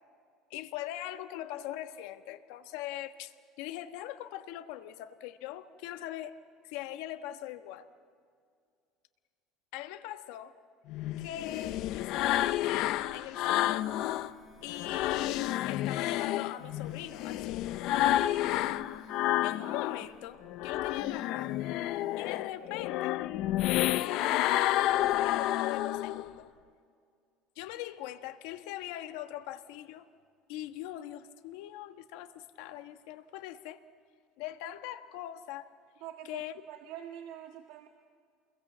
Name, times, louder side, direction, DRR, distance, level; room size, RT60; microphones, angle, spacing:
voice 1, 0.5-3.3 3.6-6.4 6.6-7.9 9.7-10.5 11.2-13.9 14.6-18.3 19.4-21.6 22.2-23.2 24.1-26.5 27.5-30.1 30.5-33.8 34.4-35.7 36.3-36.5, left 13 dB, 75° left, 9 dB, 1.3 m, -41 dB
sound 1, 10.9-14.3 14.7-20.1 20.4-26.3, left 14 dB, 55° left, 0.7 m, -30 dB
sound 2, 13.2-15.0 15.7-17.5 18.3-20.1 20.8-22.5, left 2 dB, 10° left, 4.7 m, -53 dB
voice 2, 36.0-37.9, right 11 dB, 75° right, 3 dB, 1.5 m, -45 dB
28.5 x 22.0 x 7.4 m, 2.2 s
cardioid pair, 150°, 0 cm